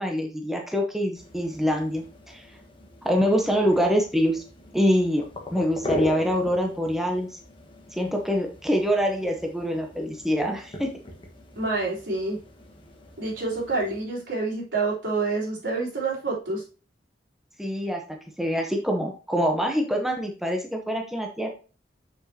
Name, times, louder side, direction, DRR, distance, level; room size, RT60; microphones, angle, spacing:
voice 1, 0.0-2.4 3.0-4.4 4.7-5.3 5.5-7.4 7.9-10.9 17.6-21.5, equal, ahead, 2 dB, 0.8 m, -25 dB
sound 1, 1.2-14.0, left 1 dB, 30° left, 1.3 m, -39 dB
voice 2, 11.6-12.4 13.2-16.6, right 3 dB, 80° right, -5 dB, 3.5 m, -27 dB
7.1 x 6.2 x 2.8 m, 0.36 s
head